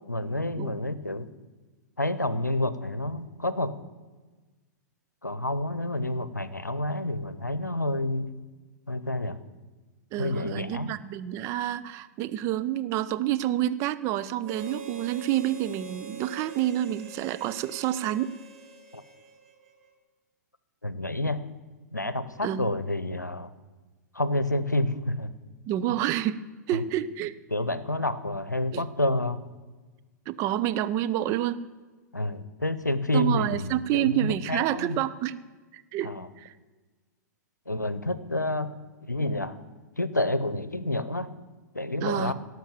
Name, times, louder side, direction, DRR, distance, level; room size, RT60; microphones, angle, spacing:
voice 1, 0.1-1.3 2.0-3.7 5.2-8.3 8.9-9.4 10.2-10.9 18.9-19.0 20.8-21.4 21.9-23.5 24.1-25.3 26.7-26.8 27.5-29.4 32.1-35.0 36.0-36.3 37.7-38.7 39.1-39.6 40.0-41.3 41.7-42.3, left 1 dB, 90° left, 15 dB, 0.7 m, -29 dB
voice 2, 10.1-18.4 22.4-22.7 25.7-27.3 28.7-28.8 30.3-31.6 33.1-35.3 35.7-36.5 42.0-42.3, right 12 dB, 30° right, 11 dB, 0.5 m, -28 dB
Harmonica, 14.4-19.9, right 4 dB, 55° right, 3.5 m, -45 dB
17.0 x 6.0 x 7.3 m, 1.3 s
figure-of-eight pair, 105°, 9 cm